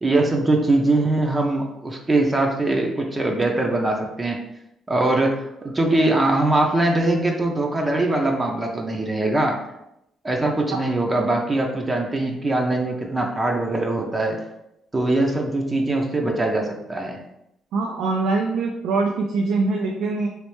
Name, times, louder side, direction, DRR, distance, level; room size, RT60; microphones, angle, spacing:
voice 1, 0.0-4.4 4.9-9.6 10.2-14.4 14.9-17.2, right 2 dB, 25° right, 1 dB, 0.5 m, -22 dB
voice 2, 17.7-20.3, right 3 dB, 85° right, 1 dB, 0.4 m, -23 dB
3.2 x 3.0 x 3.1 m, 0.83 s
cardioid pair, 90°, 0 cm